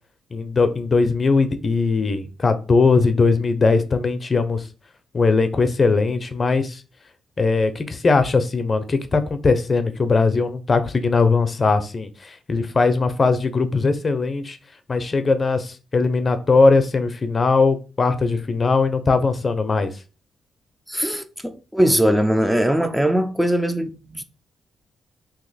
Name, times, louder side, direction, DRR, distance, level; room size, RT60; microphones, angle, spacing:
voice 1, 0.3-4.6 5.1-6.8 7.4-14.6 14.9-19.9, left 4 dB, 45° left, 0.6 m, -20 dB
voice 2, 20.9-24.2, equal, 5° right, 0.5 m, -20 dB
2.9 x 2.9 x 4.0 m
supercardioid pair, 50°, 0 cm